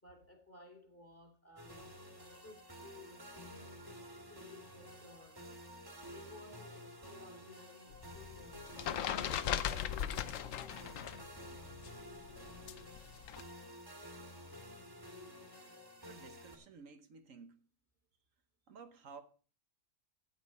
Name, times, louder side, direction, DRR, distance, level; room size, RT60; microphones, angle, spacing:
voice 1, 0.0-1.9 2.4-5.4 6.1-8.7 9.3-12.5, left 2 dB, 10° left, 2.4 m, -58 dB
sound 1, 1.6-16.6, equal, 15° right, 2.0 m, -52 dB
sound 2, 7.9-11.3 11.5-13.4, left 9 dB, 80° left, 1.1 m, -38 dB
voice 2, 16.0-17.6 18.7-19.2, right 5 dB, 80° right, 1.4 m, -54 dB
13.0 x 9.0 x 4.2 m
omnidirectional pair, 1.3 m